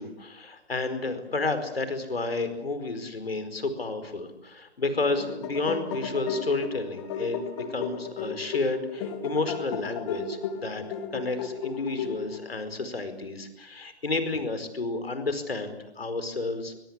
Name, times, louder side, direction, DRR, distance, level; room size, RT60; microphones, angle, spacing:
voice 1, 0.0-10.8 11.1-16.9, left 3 dB, 65° left, 10 dB, 4.7 m, -31 dB
sound 1, 5.0-12.6, left 6 dB, 25° left, 3.0 m, -34 dB
23.5 x 22.0 x 8.3 m, 0.86 s
figure-of-eight pair, 140°, 32 cm